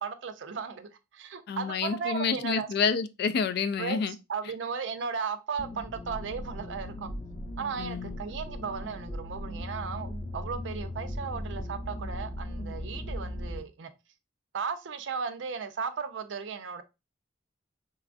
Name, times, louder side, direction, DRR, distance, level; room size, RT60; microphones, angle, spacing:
voice 1, 0.0-2.7 3.8-7.1 7.6-13.9 14.5-16.8, right 6 dB, 70° right, 0.4 m, -36 dB
voice 2, 1.5-4.1 7.8-8.2, left 6 dB, 55° left, 0.3 m, -29 dB
sound 1, 5.6-13.6, left 1 dB, 15° left, 0.6 m, -38 dB
4.2 x 2.3 x 2.4 m
head